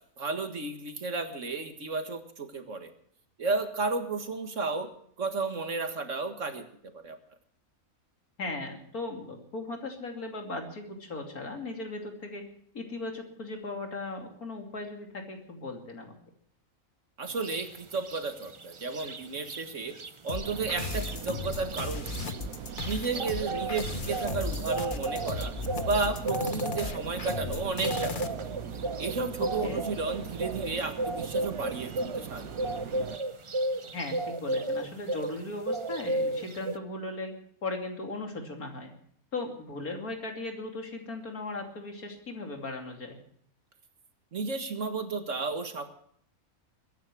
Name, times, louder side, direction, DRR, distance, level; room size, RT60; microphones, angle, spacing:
voice 1, 0.2-2.9 3.4-4.9 5.2-6.7 6.9-7.2 17.2-19.9 20.2-22.0 22.8-25.5 25.9-28.2 29.0-32.5 44.3-45.9, right 4 dB, 60° right, 7 dB, 2.0 m, -33 dB
voice 2, 8.4-12.5 12.7-16.2 29.4-29.8 33.9-38.9 39.3-43.2, left 2 dB, 90° left, 3 dB, 3.4 m, -37 dB
sound 1, 17.4-17.7 18.0-19.6 19.9-20.1 20.3-35.4 35.6-36.8, right 2 dB, 35° right, 0.5 m, -34 dB
sound 2, 20.3-28.3, left 5 dB, 40° left, 1.0 m, -36 dB
sound 3, 20.4-33.2, right 7 dB, 75° right, 1.4 m, -41 dB
22.0 x 10.5 x 6.2 m, 0.65 s
omnidirectional pair, 1.5 m